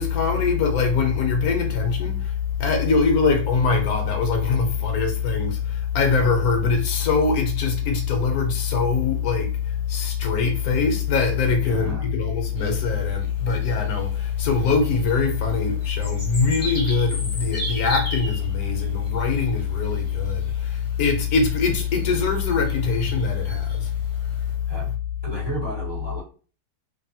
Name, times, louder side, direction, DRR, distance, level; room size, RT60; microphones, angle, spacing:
voice 1, 0.0-23.9 24.2-24.7, left 5 dB, 70° left, 1.0 m, -22 dB
voice 2, 11.6-12.1 24.7-24.9 25.2-26.2, right 3 dB, 25° right, 0.5 m, -33 dB
sound 1, 12.6-24.5, equal, 30° left, 0.7 m, -38 dB
2.6 x 2.5 x 2.7 m
omnidirectional pair, 1.7 m